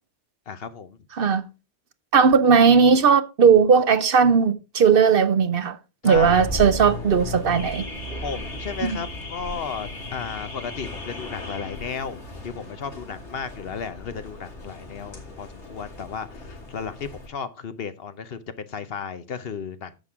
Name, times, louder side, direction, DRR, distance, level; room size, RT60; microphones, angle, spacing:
voice 1, 0.5-1.0 6.0-6.3 8.2-19.9, left 6 dB, 60° left, 1.0 m, -34 dB
voice 2, 1.1-1.4 2.1-5.8 6.0-7.8 8.8-9.0, right 6 dB, 60° right, 0.8 m, -17 dB
Car / Alarm, 6.1-17.3, left 2 dB, 80° left, 2.8 m, -36 dB
10.5 x 7.5 x 3.6 m
omnidirectional pair, 1.2 m